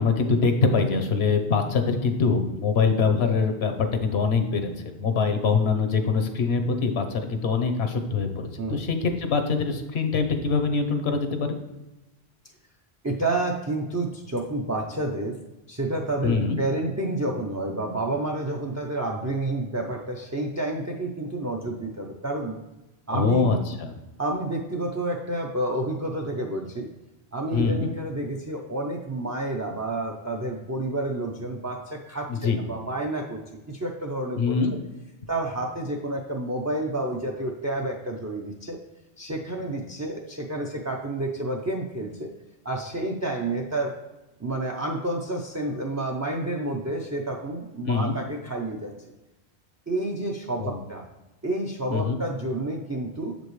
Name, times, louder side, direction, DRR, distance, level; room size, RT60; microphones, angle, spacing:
voice 1, 0.0-4.7 5.0-11.5 16.2-16.6 23.1-23.9 27.5-27.9 32.3-32.6 34.4-34.7 47.8-48.2 50.6-50.8 51.9-52.2, left 4 dB, 75° left, 7 dB, 1.1 m, -24 dB
voice 2, 13.0-15.4 15.7-22.6 23.1-23.5 24.2-26.9 27.3-33.4 33.7-34.8 35.3-38.8 39.2-42.3 42.6-43.9 44.4-48.9 49.9-51.0 51.4-53.4, right 2 dB, 25° right, 1 dB, 0.4 m, -29 dB
7.2 x 5.2 x 3.2 m, 1.0 s
omnidirectional pair, 1.1 m